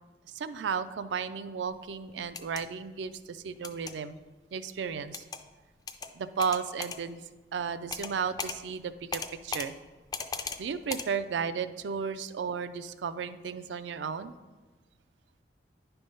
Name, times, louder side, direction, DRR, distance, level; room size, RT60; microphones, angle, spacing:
voice 1, 0.3-4.2 4.5-5.2 6.1-7.2 7.5-9.7 10.6-14.3, right 6 dB, 90° right, 12 dB, 0.4 m, -34 dB
sound 1, 2.2-2.6 3.6-3.9 5.1-5.4 5.9-6.1 6.4-7.0 7.9-8.1 8.4-8.6 9.1-9.7 10.1-10.6 10.9-11.1, left 5 dB, 20° left, 0.3 m, -36 dB
10.0 x 3.4 x 5.4 m, 1.2 s
head